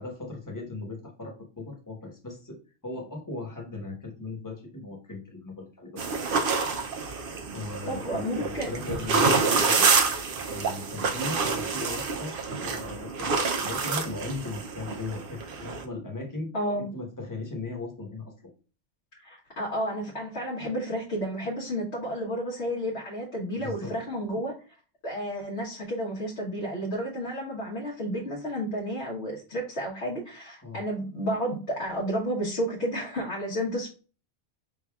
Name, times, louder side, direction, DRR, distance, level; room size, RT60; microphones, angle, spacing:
voice 1, 0.0-2.6 2.8-6.3 7.5-9.9 10.5-13.4 13.6-18.3 23.5-24.0 30.6-30.8, left 2 dB, 20° left, 0 dB, 1.1 m, -37 dB
sound 1, 6.0-15.8, right 4 dB, 60° right, 0.7 m, -27 dB
voice 2, 7.9-8.7 16.5-16.9 19.2-24.5 25.0-33.9, equal, 75° left, -4 dB, 1.4 m, -31 dB
5.4 x 3.4 x 2.3 m, 0.35 s
omnidirectional pair, 1.1 m